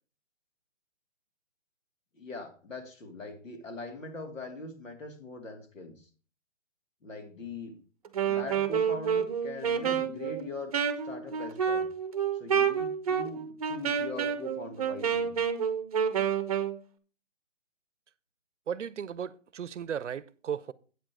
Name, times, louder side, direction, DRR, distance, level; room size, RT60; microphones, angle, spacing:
voice 1, 2.1-6.1 7.0-7.8 8.2-10.7 11.0-11.9 12.4-15.3, left 2 dB, 80° left, 2.8 m, -41 dB
Wind instrument woodwind instrument, 8.0-16.8, right 7 dB, 30° right, 0.8 m, -29 dB
voice 2, 18.7-20.7, right 8 dB, 65° right, 0.7 m, -35 dB
8.5 x 7.9 x 4.6 m
hypercardioid pair, 155°, 38 cm